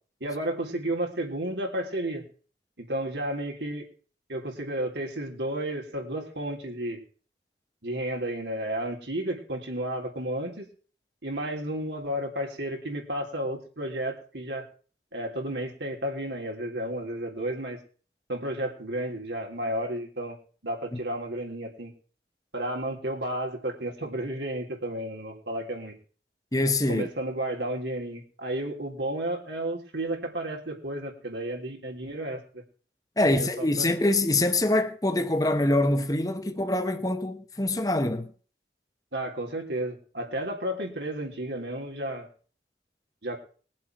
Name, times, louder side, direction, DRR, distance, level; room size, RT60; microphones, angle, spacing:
voice 1, 0.2-2.2 2.8-3.8 4.3-7.0 7.8-10.7 11.2-14.6 15.1-17.8 18.3-20.4 20.6-21.9 22.5-25.9 26.9-32.6 33.2-33.9 39.1-42.3 43.2-43.4, right 1 dB, 80° right, 3.4 m, -32 dB
voice 2, 26.5-27.1 33.2-38.3, left 2 dB, 20° left, 1.0 m, -24 dB
21.5 x 7.5 x 4.6 m
head